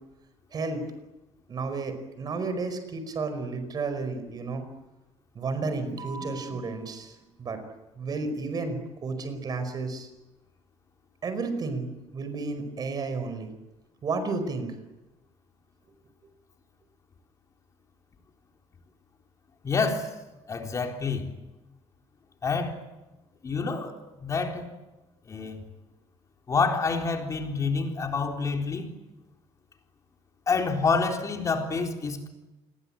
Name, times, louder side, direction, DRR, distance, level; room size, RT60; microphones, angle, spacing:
voice 1, 0.5-0.9 1.5-4.7 5.3-7.6 8.0-10.1 11.2-13.5 14.0-14.7, right 3 dB, 35° right, 9 dB, 5.0 m, -32 dB
voice 2, 19.6-20.1 20.5-21.3 22.4-22.8 23.4-23.9 24.2-24.7 25.3-25.6 26.5-28.9 30.5-32.3, left 4 dB, 25° left, 3 dB, 3.9 m, -27 dB
28.0 x 22.0 x 8.9 m, 1.0 s
cardioid pair, 165°, 12 cm